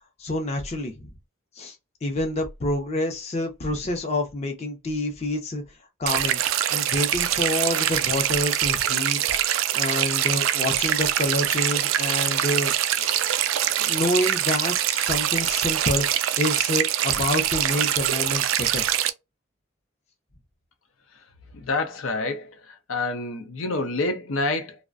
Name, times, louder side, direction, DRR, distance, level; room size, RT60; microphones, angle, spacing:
voice 1, 0.2-1.1 1.6-1.7 2.0-5.6 6.0-6.4 6.7-13.2 13.8-18.8, left 1 dB, 30° left, 0.5 m, -28 dB
sound 1, 6.1-19.1, right 11 dB, 75° right, 0.3 m, -24 dB
voice 2, 21.5-24.8, left 2 dB, 85° left, 0.6 m, -28 dB
2.5 x 2.1 x 2.4 m
head